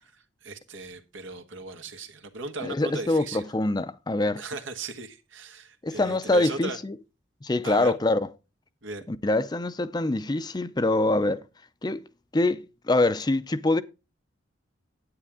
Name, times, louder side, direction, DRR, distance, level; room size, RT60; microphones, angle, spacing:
voice 1, 0.4-3.5 4.4-6.8 7.6-8.0 8.8-9.1, right 3 dB, 90° right, 1.5 m, -37 dB
voice 2, 2.6-4.4 5.8-6.9 7.4-8.3 9.1-11.4 11.8-12.0 12.3-13.8, left 2 dB, 20° left, 0.5 m, -25 dB
9.8 x 8.9 x 3.6 m
head